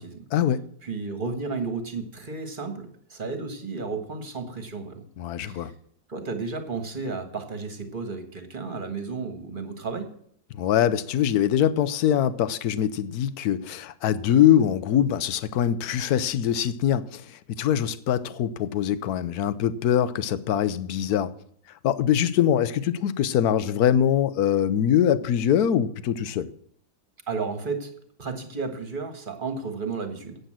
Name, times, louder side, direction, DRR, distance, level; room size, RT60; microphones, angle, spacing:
voice 1, 0.3-0.6 5.2-5.7 10.5-21.3 21.8-26.5, left 10 dB, 65° left, 1.0 m, -23 dB
voice 2, 0.8-5.0 5.5-5.7 6.1-10.1 27.3-27.9 28.2-30.4, right 4 dB, 30° right, 1.5 m, -33 dB
9.0 x 8.0 x 7.5 m
omnidirectional pair, 2.0 m